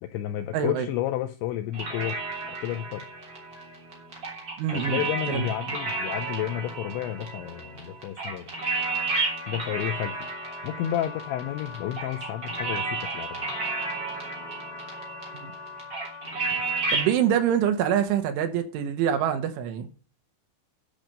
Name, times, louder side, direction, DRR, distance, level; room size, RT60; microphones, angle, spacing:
voice 1, 0.0-2.2 2.6-3.1 4.7-8.5 9.5-10.3 10.6-13.5 16.6-16.8, left 12 dB, 90° left, 2.6 m, -31 dB
voice 2, 0.5-0.9 4.6-5.5 16.9-19.9, right 9 dB, 75° right, 3.5 m, -25 dB
sound 1, 1.7-17.1, right 3 dB, 25° right, 3.0 m, -32 dB
Wind instrument woodwind instrument, 8.8-16.3, left 5 dB, 15° left, 2.9 m, -42 dB
10.5 x 6.1 x 6.5 m
omnidirectional pair, 5.9 m